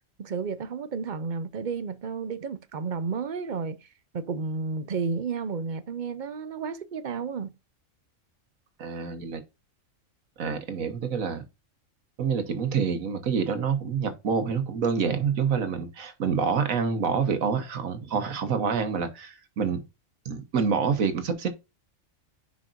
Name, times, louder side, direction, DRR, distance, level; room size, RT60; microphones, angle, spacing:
voice 1, 0.2-3.9 4.1-7.6, right 5 dB, 45° right, 0.7 m, -32 dB
voice 2, 8.8-9.4 10.4-11.4 12.2-19.8 20.2-21.5, right 6 dB, 85° right, 1.5 m, -27 dB
10.0 x 5.1 x 2.5 m
omnidirectional pair, 1.4 m